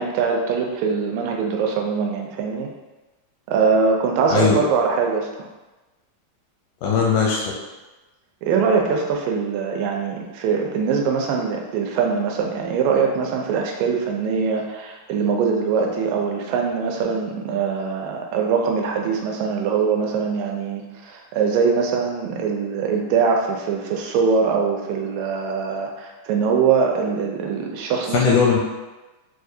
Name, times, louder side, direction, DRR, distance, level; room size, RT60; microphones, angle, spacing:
voice 1, 0.0-2.7 3.5-5.5 8.4-28.4, right 5 dB, 80° right, 1 dB, 2.1 m, -22 dB
voice 2, 6.8-7.4 28.1-28.6, left 6 dB, 85° left, -3 dB, 1.8 m, -18 dB
6.2 x 2.4 x 2.7 m, 1.1 s
omnidirectional pair, 4.1 m